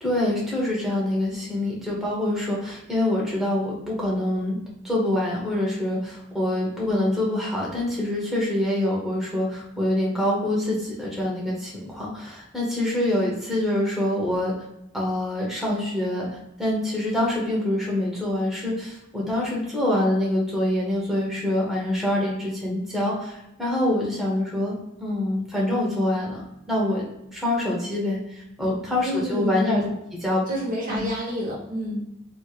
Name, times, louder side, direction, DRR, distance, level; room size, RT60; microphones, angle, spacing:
voice 1, 0.0-4.6 4.8-14.5 14.9-16.3 16.6-26.4 26.7-27.0 27.3-29.9 30.2-30.4 30.9-31.1, left 1 dB, ahead, -5 dB, 0.9 m, -25 dB
voice 2, 29.0-29.8 30.5-32.0, equal, 45° right, -4 dB, 0.9 m, -29 dB
3.1 x 3.0 x 2.4 m, 0.84 s
head